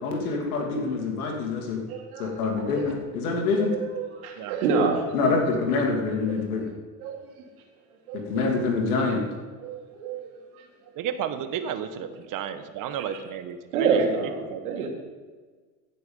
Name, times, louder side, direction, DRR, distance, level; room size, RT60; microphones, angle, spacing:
voice 1, 0.0-1.8 2.2-3.8 5.1-6.7 8.1-9.3, left 4 dB, 85° left, 1 dB, 2.8 m, -26 dB
voice 2, 1.9-2.9 3.6-5.0 7.0-7.2 8.1-8.4 9.6-10.3 10.6-10.7 12.9-13.0 13.7-14.9, right 5 dB, 75° right, 1 dB, 2.8 m, -28 dB
voice 3, 11.0-14.1 14.5-14.9, right 8 dB, 45° right, 10 dB, 1.3 m, -33 dB
15.5 x 7.0 x 5.5 m, 1.4 s
hypercardioid pair, 95°, 43 cm